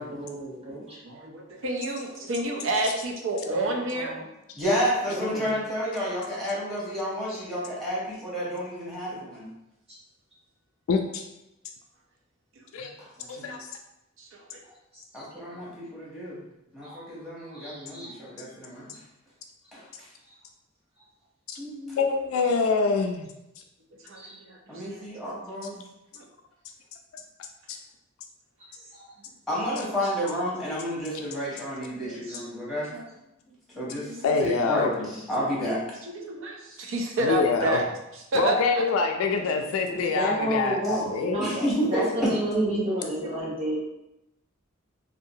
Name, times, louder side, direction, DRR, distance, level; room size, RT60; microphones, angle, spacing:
voice 1, 0.0-1.0 3.5-4.2 5.1-5.5 7.3-7.4 9.9-10.0 14.9-15.2 16.8-17.0 17.5-18.1 24.1-24.3 28.9-29.0 32.3-32.4 39.9-43.8, right 1 dB, 30° right, -7 dB, 0.8 m, -31 dB
voice 2, 1.0-4.2 9.1-9.3 12.8-12.9 13.2-13.6 14.2-14.6 24.0-24.6 24.8-25.1 25.7-25.9 26.1-26.3 31.8-32.2 32.9-33.0 34.1-34.2 35.6-35.7 36.0-37.8 38.3-38.6 43.2-43.3, right 1 dB, 65° right, 1 dB, 0.5 m, -30 dB
voice 3, 4.6-9.5 13.0-13.1 15.1-16.4 16.7-18.9 19.7-20.1 21.6-22.1 24.7-25.8 29.5-32.9 33.7-34.1 34.4-35.8 41.4-42.3, equal, ahead, -7 dB, 0.9 m, -30 dB
voice 4, 10.9-11.2 12.7-12.9 13.3-13.6 21.5-21.6 22.0-23.3 27.7-27.8 34.2-34.9 37.2-37.8 38.3-41.5, left 4 dB, 80° left, 4 dB, 0.3 m, -25 dB
2.6 x 2.3 x 2.7 m, 0.89 s
head